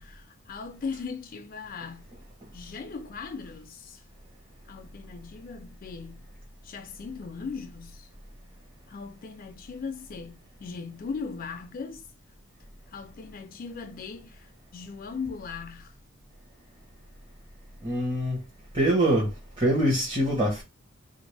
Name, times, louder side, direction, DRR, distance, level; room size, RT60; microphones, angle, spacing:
voice 1, 0.0-2.1 2.5-4.0 4.7-6.3 6.6-8.1 8.9-12.1 12.9-16.0, left 5 dB, 45° left, 0.3 m, -39 dB
voice 2, 17.8-18.4 18.7-20.6, right 1 dB, 25° right, 1.0 m, -24 dB
2.8 x 2.6 x 3.2 m
head